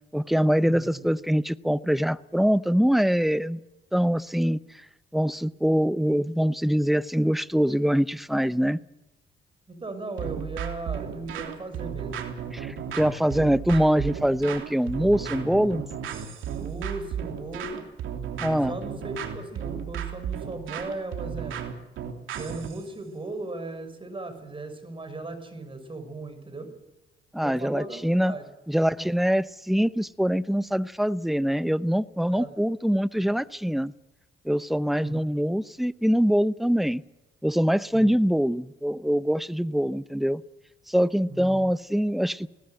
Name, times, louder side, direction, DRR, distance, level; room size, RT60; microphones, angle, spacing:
voice 1, 0.1-3.6 3.9-4.6 5.1-8.8 12.5-15.8 18.4-18.7 27.3-28.3 28.7-33.9 34.4-37.0 37.4-40.4 40.9-42.5, equal, ahead, 16 dB, 0.7 m, -24 dB
voice 2, 0.6-1.0 9.7-12.2 16.4-17.9 18.7-21.6 22.3-26.7 27.4-28.4 32.3-32.5 35.0-35.2 37.9-38.2 41.3-41.6, right 2 dB, 25° right, 9 dB, 5.4 m, -37 dB
sound 1, 10.2-22.8, right 8 dB, 80° right, 3.1 m, -34 dB
21.0 x 18.5 x 7.8 m, 0.98 s
cardioid pair, 90°, 20 cm